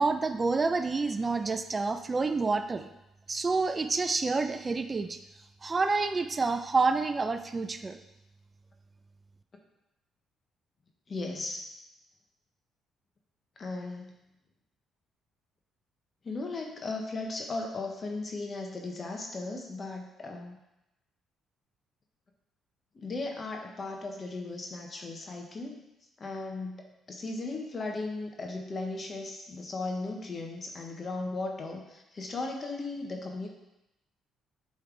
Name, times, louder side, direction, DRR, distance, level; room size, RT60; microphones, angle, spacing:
voice 1, 0.0-2.9 3.3-5.2 5.6-8.0, right 3 dB, 30° right, 8 dB, 0.4 m, -28 dB
voice 2, 11.1-11.6 13.6-14.1 16.2-20.6 22.9-25.8 26.2-33.5, left 3 dB, 35° left, 2 dB, 0.9 m, -36 dB
7.8 x 3.3 x 3.8 m, 0.91 s
cardioid pair, 85°, 0 cm